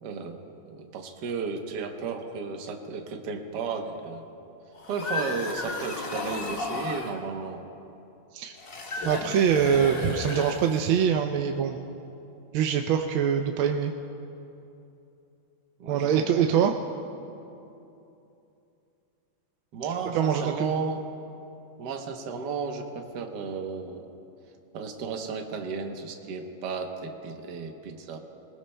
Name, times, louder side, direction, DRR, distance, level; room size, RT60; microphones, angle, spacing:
voice 1, 0.0-4.3 4.9-7.6 15.8-16.4 19.7-21.1 21.8-24.1 24.7-28.2, right 5 dB, 60° right, 4 dB, 1.5 m, -34 dB
sound 1, 4.7-7.2 8.6-11.0, left 3 dB, 40° left, 0.9 m, -33 dB
voice 2, 9.1-11.8 12.5-13.9 15.9-16.7 20.1-20.7, right 8 dB, 80° right, 4 dB, 1.4 m, -24 dB
21.5 x 19.5 x 2.2 m, 2.8 s
omnidirectional pair, 2.2 m